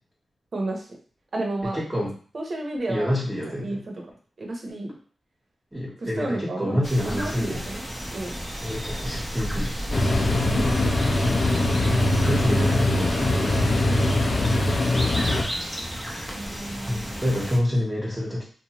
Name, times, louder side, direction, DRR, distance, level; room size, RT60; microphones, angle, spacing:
voice 1, 0.5-0.8 1.3-1.8 2.3-3.1 3.6-3.8 4.4-5.0 6.0-6.8 7.0-7.8 8.1-8.3 10.6-10.7 12.2-12.3 16.3-17.2, right 2 dB, 55° right, 1 dB, 0.7 m, -31 dB
voice 2, 1.7-2.1 2.9-3.8 5.7-7.6 8.6-9.8 12.1-13.7 16.9-18.4, equal, 15° right, -6 dB, 0.9 m, -27 dB
sound 1, 6.8-17.6, equal, ahead, 0.6 m, -33 dB
sound 2, 9.9-15.4, left 1 dB, 50° left, 0.6 m, -22 dB
2.6 x 2.2 x 2.9 m, 0.42 s
cardioid pair, 60°, 0 cm